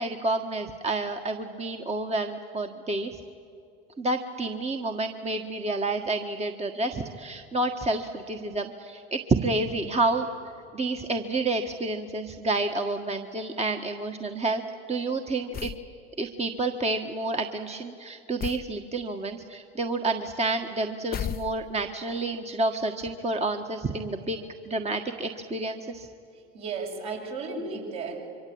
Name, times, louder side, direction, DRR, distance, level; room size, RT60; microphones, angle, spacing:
voice 1, 0.0-3.2 4.0-10.3 10.7-14.6 14.9-15.7 16.2-26.1, right 2 dB, 20° right, 5 dB, 1.5 m, -29 dB
sound 1, 15.5-15.9 18.4-18.7 21.1-21.9, left 9 dB, 30° left, 0.6 m, -34 dB
voice 2, 26.3-28.3, right 4 dB, 55° right, 0 dB, 7.4 m, -34 dB
25.5 x 24.0 x 8.8 m, 2.4 s
hypercardioid pair, 80°, 32 cm